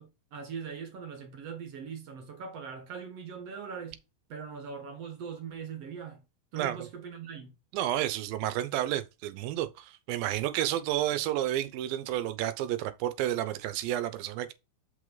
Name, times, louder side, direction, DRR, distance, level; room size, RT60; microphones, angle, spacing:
voice 1, 0.0-4.0 4.3-6.2 6.5-7.5, right 6 dB, 55° right, 2.0 m, -41 dB
voice 2, 7.7-14.5, right 12 dB, 85° right, 2.5 m, -31 dB
6.4 x 5.4 x 3.9 m
omnidirectional pair, 4.1 m